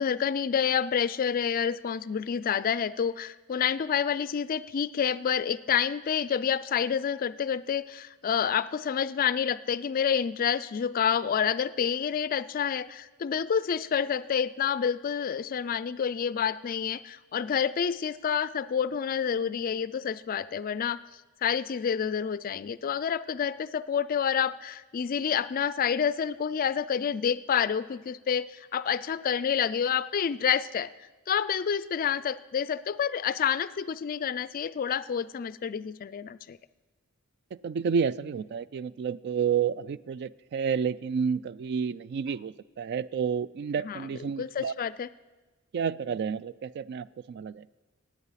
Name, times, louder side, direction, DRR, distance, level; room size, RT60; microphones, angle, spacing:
voice 1, 0.0-21.0 21.4-30.9 31.3-36.6 43.8-45.1, left 7 dB, 40° left, 16 dB, 0.3 m, -28 dB
voice 2, 37.6-44.7 45.7-47.7, right 6 dB, 50° right, 18 dB, 0.3 m, -30 dB
17.5 x 8.1 x 5.7 m, 1.2 s
head